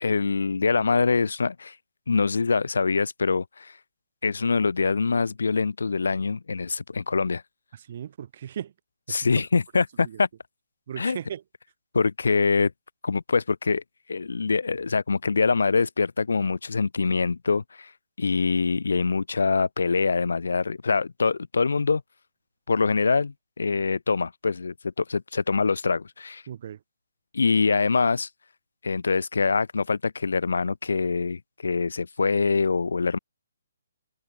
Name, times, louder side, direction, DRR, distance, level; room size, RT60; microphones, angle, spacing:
voice 1, 0.0-1.7 2.1-3.8 4.2-7.4 9.1-10.3 11.0-11.2 11.9-12.7 13.0-13.8 14.1-17.9 18.2-22.0 22.7-26.4 27.3-28.3 28.8-33.2, left 4 dB, 65° left, 3.0 m, -24 dB
voice 2, 7.7-8.7 9.1-9.3 10.0-10.2 10.9-11.4 26.5-26.8, right 9 dB, 45° right, 4.1 m, -37 dB
figure-of-eight pair, 140°, 0 cm